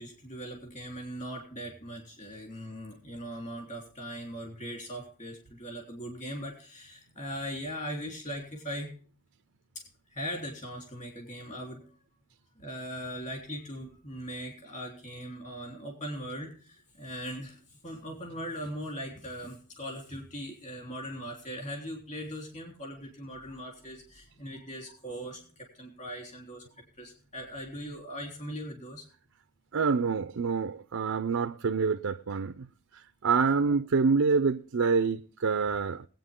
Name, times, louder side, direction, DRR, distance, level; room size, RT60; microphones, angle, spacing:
voice 1, 0.0-8.9 9.8-11.9 12.6-26.6 27.0-29.1 33.7-33.8, equal, 35° left, 3.5 m, -40 dB
voice 2, 29.7-32.7 32.9-36.1, right 5 dB, 65° right, 0.5 m, -27 dB
20.5 x 8.9 x 3.7 m
head